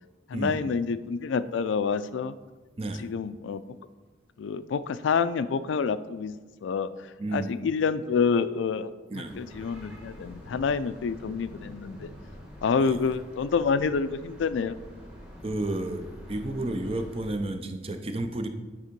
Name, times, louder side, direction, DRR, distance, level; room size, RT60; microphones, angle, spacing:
voice 1, 0.3-2.3 3.0-3.8 4.4-6.3 6.6-8.9 9.3-12.1 12.6-14.8, left 5 dB, 90° left, 13 dB, 0.3 m, -28 dB
voice 2, 7.2-7.5 9.1-9.3 12.8-13.0 15.4-18.5, right 2 dB, 30° right, 6 dB, 0.5 m, -31 dB
sound 1, 9.2-17.4, equal, 5° right, 1.2 m, -46 dB
9.3 x 3.6 x 5.2 m, 1.3 s
head